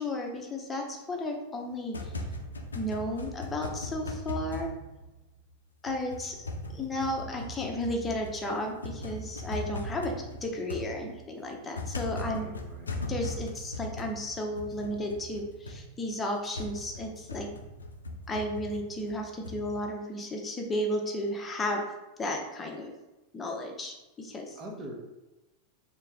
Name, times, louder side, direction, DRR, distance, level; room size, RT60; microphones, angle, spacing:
voice 1, 0.0-2.1 2.7-4.7 5.8-10.1 10.4-12.5 13.1-17.5 18.3-21.8 22.2-22.9 23.3-24.6, left 1 dB, 15° left, 1 dB, 0.9 m, -33 dB
sound 1, 1.7-5.5 5.9-19.8, left 1 dB, 75° left, 0.6 m, -39 dB
voice 2, 12.1-12.9 24.6-25.1, right 1 dB, 30° right, 0 dB, 1.1 m, -42 dB
4.5 x 3.0 x 3.6 m, 1.0 s
figure-of-eight pair, 90°, 0 cm